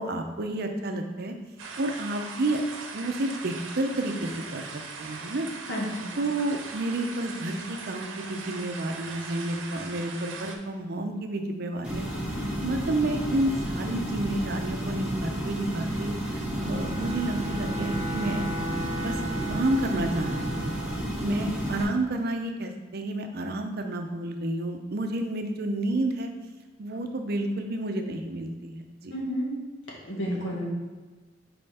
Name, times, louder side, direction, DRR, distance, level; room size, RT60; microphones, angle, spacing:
voice 1, 0.0-1.3 1.8-2.6 2.9-5.5 6.2-12.0 12.6-18.5 19.0-19.2 19.5-20.7 21.2-26.3 26.8-29.2, right 1 dB, 55° right, 5 dB, 0.6 m, -30 dB
sound 1, 1.6-10.6, right 4 dB, 85° right, 0.8 m, -40 dB
voice 2, 5.7-6.1 29.1-29.5 30.1-30.6, equal, 70° left, -4 dB, 1.6 m, -30 dB
sound 2, 11.8-21.8, equal, 5° right, 1.6 m, -32 dB
Bowed string instrument, 16.5-21.0, right 1 dB, 35° right, 1.2 m, -36 dB
5.5 x 4.3 x 4.2 m, 1.3 s
head